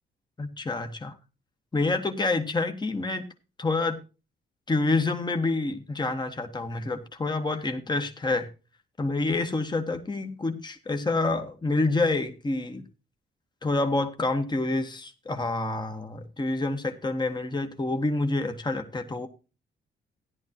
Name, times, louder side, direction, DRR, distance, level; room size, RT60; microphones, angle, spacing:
voice 1, 0.4-1.1 1.7-3.2 3.6-4.0 4.7-8.5 9.0-12.8 13.6-19.3, left 2 dB, 20° left, 6 dB, 1.3 m, -27 dB
14.5 x 10.5 x 2.9 m, 0.31 s
cardioid pair, 85°, 20 cm